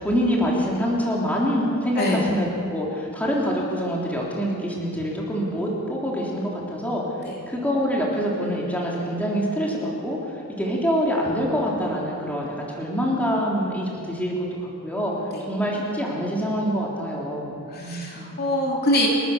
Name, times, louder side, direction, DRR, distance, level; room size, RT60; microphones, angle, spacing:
voice 1, 0.0-7.0 7.5-10.2 10.5-14.3 14.6-15.1 15.5-18.3, equal, 5° left, -4 dB, 3.4 m, -25 dB
voice 2, 17.7-19.1, left 1 dB, 45° left, -2 dB, 3.1 m, -24 dB
30.0 x 13.0 x 6.7 m, 2.5 s
head